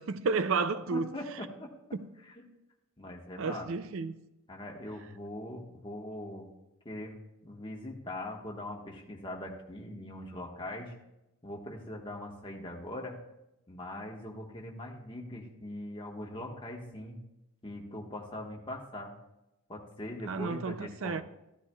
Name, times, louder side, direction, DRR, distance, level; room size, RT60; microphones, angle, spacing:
voice 1, 0.0-1.1 1.9-2.1 3.4-4.2 20.3-21.2, right 4 dB, 60° right, 0.4 m, -32 dB
voice 2, 0.9-1.7 2.2-2.4 3.0-3.7 4.5-6.5 6.8-10.9 11.4-13.2 13.7-17.2 17.6-19.1 19.7-21.2, left 1 dB, 25° left, 1.3 m, -41 dB
14.0 x 12.5 x 2.3 m
head